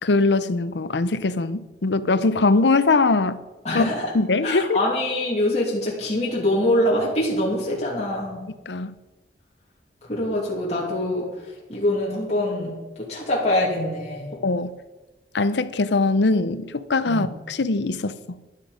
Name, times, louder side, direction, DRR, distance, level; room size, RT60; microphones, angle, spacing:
voice 1, 0.0-3.4 3.7-3.8 4.1-4.8 8.7-8.9 14.4-14.7 15.3-18.4, left 3 dB, 80° left, 0.7 m, -21 dB
voice 2, 3.6-4.1 4.4-8.4 10.1-14.4 17.0-17.3, left 1 dB, 40° left, 2.8 m, -24 dB
12.0 x 11.5 x 5.1 m
head